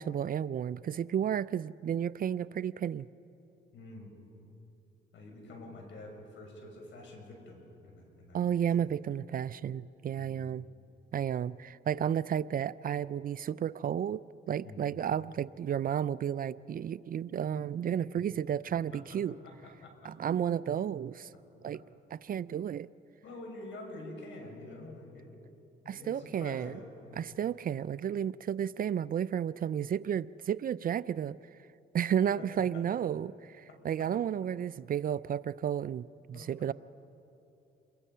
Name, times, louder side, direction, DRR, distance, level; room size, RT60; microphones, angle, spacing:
voice 1, 0.0-3.1 8.3-10.6 11.1-19.4 20.0-21.3 21.6-21.8 22.1-22.9 25.9-26.8 27.2-31.4 31.9-36.7, right 9 dB, 45° right, 18 dB, 0.4 m, -32 dB
voice 2, 3.7-4.1 5.1-8.6 10.2-10.4 14.6-14.9 18.9-19.2 19.4-20.1 23.2-25.3 25.8-27.2 32.4-32.5 32.7-32.8 34.0-34.1 36.3-36.5, left 2 dB, 70° left, 1 dB, 6.4 m, -47 dB
28.5 x 22.0 x 5.6 m, 2.9 s
cardioid pair, 90°, 20 cm